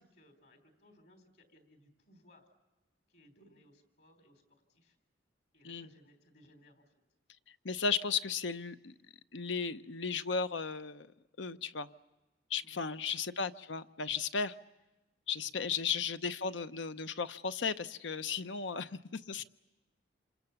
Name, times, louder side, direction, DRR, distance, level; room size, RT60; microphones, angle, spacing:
voice 1, 0.0-2.5 3.1-5.0 5.5-6.9 12.6-13.2 15.4-15.7, left 1 dB, 60° left, 5 dB, 4.0 m, -63 dB
voice 2, 7.6-8.9 9.3-11.1 11.4-11.9 12.5-14.5 15.3-19.4, left 5 dB, 80° left, 11 dB, 0.8 m, -35 dB
28.0 x 27.0 x 7.1 m, 1.1 s
head